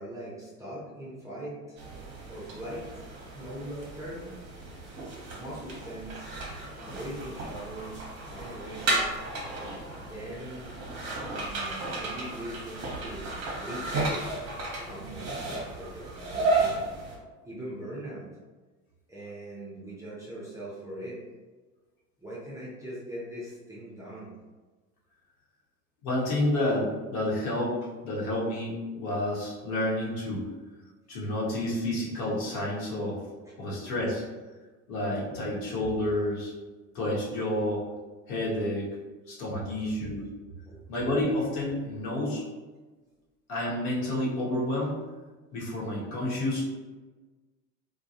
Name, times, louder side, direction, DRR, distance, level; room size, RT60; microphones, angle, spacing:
voice 1, 0.0-1.8 2.3-3.1 3.3-4.3 5.3-6.3 6.8-7.9 8.3-9.2 10.0-10.8 11.2-13.3 13.6-14.1 14.8-15.5 15.8-16.8 17.4-18.3 19.1-21.2 22.2-24.3 33.3-33.5 40.7-40.8, right 1 dB, 5° right, -8 dB, 0.5 m, -41 dB
sound 1, 1.8-17.2, right 2 dB, 35° right, 0.8 m, -33 dB
voice 2, 26.0-27.7 28.0-30.5 31.1-33.2 33.6-34.2 34.9-36.5 36.9-37.8 38.3-38.9 39.3-40.3 40.9-42.4 43.5-45.0 45.5-46.8, left 1 dB, 60° left, -5 dB, 1.1 m, -29 dB
2.3 x 2.3 x 2.8 m, 1.3 s
hypercardioid pair, 80°, 47 cm